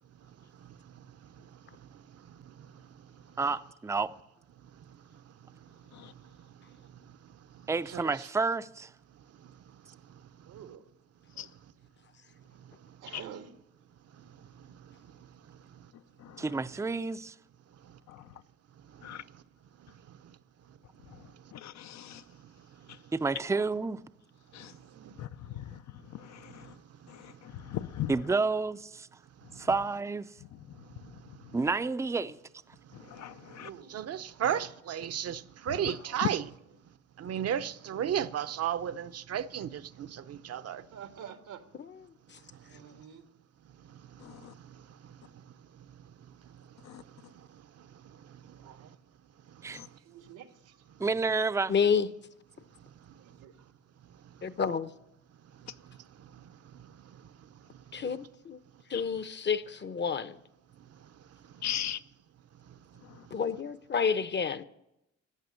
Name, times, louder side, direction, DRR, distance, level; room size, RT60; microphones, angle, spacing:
voice 1, 3.4-4.1 7.7-8.9 16.4-17.3 23.1-24.0 28.1-29.1 29.6-30.3 31.5-32.4 49.6-49.8 51.0-51.7, right 4 dB, 10° right, 0.5 m, -30 dB
voice 2, 10.4-10.8 11.3-11.5 13.0-13.5 24.9-25.7 33.5-34.0 34.3-34.6 36.0-36.2 36.6-36.7 37.2-37.4 37.9-38.2 40.7-41.6 42.6-43.2 48.4-49.0 50.0-50.8 53.1-53.7, right 8 dB, 90° right, 1.6 m, -49 dB
voice 3, 21.5-22.2 24.5-24.7 25.2-25.3 25.6-25.8 26.1-26.7 27.1-28.1 33.1-33.7 44.2-44.5 46.8-47.0 49.7-49.9 58.9-59.0 61.6-62.0, left 11 dB, 65° left, 0.7 m, -39 dB
voice 4, 33.9-36.5 37.2-40.8, right 9 dB, 55° right, 0.8 m, -33 dB
voice 5, 51.7-52.1 54.4-54.9 57.9-58.6 58.9-60.4 63.3-64.6, left 6 dB, 35° left, 0.8 m, -29 dB
14.0 x 8.4 x 9.5 m
cardioid pair, 90°, 30 cm